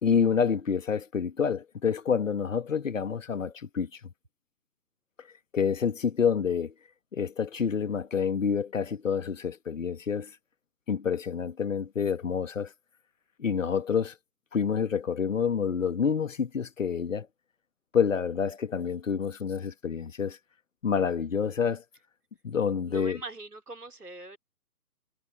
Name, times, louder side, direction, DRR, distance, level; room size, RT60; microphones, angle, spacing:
voice 1, 0.0-4.0 5.5-6.7 7.1-10.3 10.9-12.7 13.4-14.1 14.5-17.3 17.9-20.4 20.8-21.8 22.4-23.2, left 6 dB, 55° left, 1.3 m, -28 dB
voice 2, 22.9-24.4, right 2 dB, 75° right, 4.0 m, -42 dB
figure-of-eight pair, 140°, 47 cm